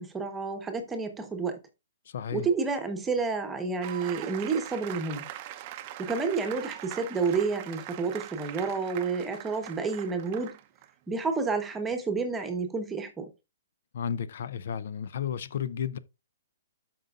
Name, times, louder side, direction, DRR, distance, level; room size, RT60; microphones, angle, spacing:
voice 1, 0.0-1.6 2.3-5.3 6.0-10.6 11.1-13.3, right 4 dB, 5° right, 1.1 m, -30 dB
voice 2, 2.1-2.5 13.9-16.0, left 8 dB, 50° left, 0.6 m, -33 dB
sound 1, 3.8-10.9, right 13 dB, 25° right, 0.7 m, -42 dB
13.5 x 5.4 x 2.4 m
hypercardioid pair, 175°, 0 cm